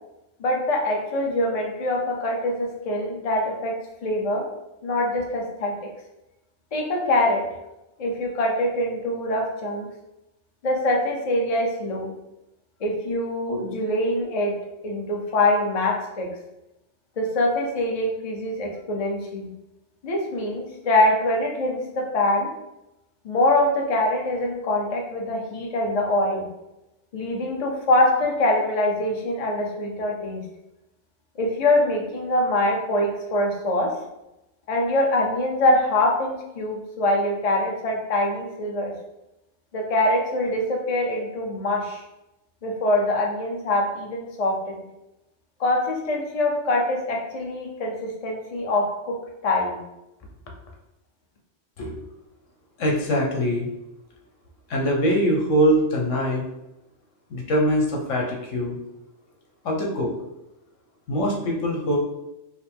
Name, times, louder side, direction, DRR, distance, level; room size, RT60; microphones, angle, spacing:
voice 1, 0.4-4.5 4.8-5.9 6.7-7.5 8.0-9.9 10.6-12.1 12.8-16.4 17.2-19.5 20.0-22.5 23.2-26.5 27.1-30.4 31.4-33.9 34.7-38.9 39.7-42.0 42.6-44.8 45.6-49.2 49.4-49.8, left 1 dB, 40° left, 0 dB, 0.6 m, -24 dB
voice 2, 52.8-53.7 54.7-56.4 57.3-58.8 59.6-60.1 61.1-62.0, equal, 80° left, 0 dB, 1.2 m, -23 dB
5.4 x 2.1 x 3.4 m, 0.92 s
omnidirectional pair, 1.3 m